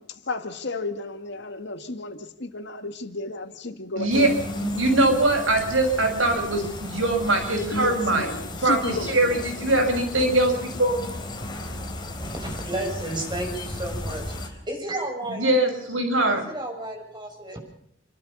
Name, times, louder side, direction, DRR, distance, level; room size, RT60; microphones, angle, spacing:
voice 1, 0.0-4.4 7.7-9.8, left 2 dB, 60° left, 2.0 m, -33 dB
voice 2, 4.0-4.3 4.7-8.3 8.6-11.1 15.3-16.4, right 2 dB, 80° right, 6.8 m, -22 dB
sound 1, 4.1-14.5, left 1 dB, 25° left, 4.0 m, -34 dB
voice 3, 11.8-15.5 16.3-17.6, right 1 dB, 25° right, 6.9 m, -33 dB
29.5 x 12.5 x 7.2 m
head